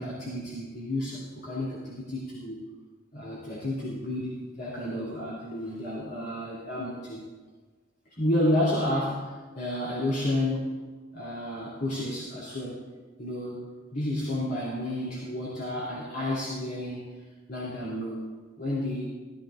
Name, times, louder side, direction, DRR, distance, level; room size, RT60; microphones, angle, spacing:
voice 1, 0.0-2.6 3.1-7.2 8.1-10.7 11.1-12.8 13.2-17.2 17.5-18.3 18.6-19.0, left 1 dB, 55° left, -7 dB, 3.1 m, -31 dB
15.5 x 15.5 x 2.6 m, 1.4 s
head